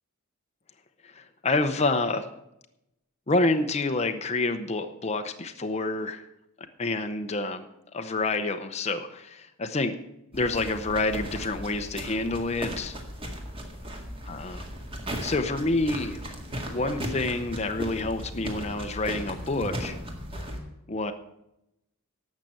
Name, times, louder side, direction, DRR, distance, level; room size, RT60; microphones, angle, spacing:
voice 1, 1.0-2.3 3.3-6.2 6.8-7.7 7.9-10.0 10.3-12.9 14.3-14.7 15.2-16.3 16.7-20.0 20.9-21.1, left 2 dB, 30° left, 7 dB, 0.7 m, -28 dB
man walking on the street, 10.3-20.6, equal, 25° right, 2.0 m, -36 dB
11.5 x 7.4 x 7.7 m, 0.86 s
head